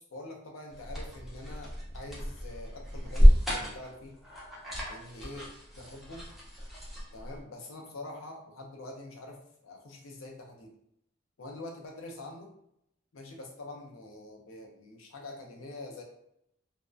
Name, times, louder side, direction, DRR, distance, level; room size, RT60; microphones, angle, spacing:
voice 1, 0.0-4.2 4.9-5.5 5.8-6.2 7.1-10.7 11.4-12.5 13.1-16.0, left 2 dB, 80° left, 1 dB, 0.5 m, -45 dB
sound 1, 0.7-7.4, equal, ahead, 0.4 m, -28 dB
2.5 x 2.1 x 2.3 m, 0.76 s
head